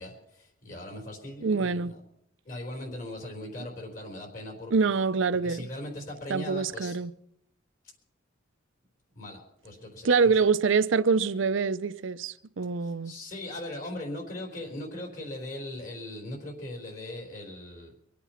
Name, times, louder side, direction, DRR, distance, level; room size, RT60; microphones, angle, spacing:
voice 1, 0.0-2.0 2.4-4.7 5.4-7.0 9.2-10.1 12.8-17.9, left 1 dB, 45° left, 4.1 m, -39 dB
voice 2, 1.4-1.9 4.7-5.7 6.3-7.1 10.0-13.1, right 5 dB, 65° right, 0.6 m, -25 dB
25.0 x 8.5 x 5.7 m
head